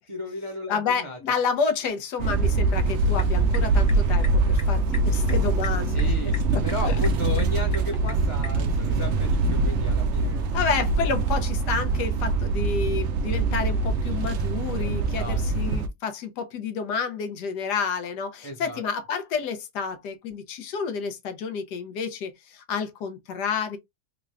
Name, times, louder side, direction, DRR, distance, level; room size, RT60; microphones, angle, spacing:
voice 1, 0.1-1.2 5.9-10.6 15.2-15.4 18.4-18.8, left 1 dB, 30° right, 0.6 m, -34 dB
voice 2, 0.7-6.1 6.5-7.0 10.5-23.8, left 6 dB, 85° left, 1.4 m, -30 dB
sound 1, 2.2-15.9, right 3 dB, 70° right, 0.7 m, -23 dB
sound 2, 3.0-8.6, left 4 dB, 55° left, 1.0 m, -43 dB
3.7 x 2.3 x 3.2 m
omnidirectional pair, 1.7 m